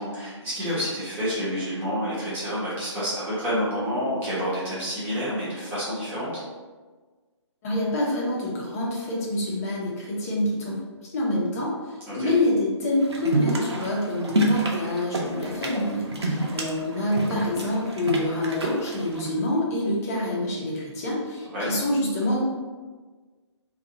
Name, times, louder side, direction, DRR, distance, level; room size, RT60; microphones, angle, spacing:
voice 1, 0.0-6.3 12.1-12.3 16.2-16.5 21.5-21.7, equal, 10° right, -10 dB, 1.0 m, -29 dB
voice 2, 7.6-10.8 11.1-22.5, left 1 dB, 30° left, -4 dB, 0.9 m, -26 dB
sound 1, 13.0-19.3, right 2 dB, 60° right, 0.7 m, -28 dB
2.8 x 2.5 x 3.8 m, 1.4 s
figure-of-eight pair, 140°, 15 cm